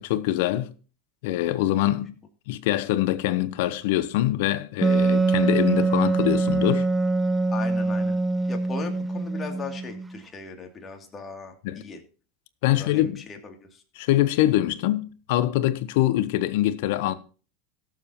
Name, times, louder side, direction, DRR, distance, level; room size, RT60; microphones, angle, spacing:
voice 1, 0.0-0.7 1.2-2.1 2.5-6.9 11.6-11.8 12.6-13.2 14.0-17.1, left 14 dB, 65° left, 0.8 m, -24 dB
Wind instrument woodwind instrument, 4.8-10.2, right 3 dB, 15° right, 0.4 m, -23 dB
voice 2, 7.5-8.2 8.5-12.0 12.7-13.8, left 4 dB, 25° left, 2.5 m, -38 dB
18.0 x 7.3 x 2.9 m
hypercardioid pair, 85°, 0 cm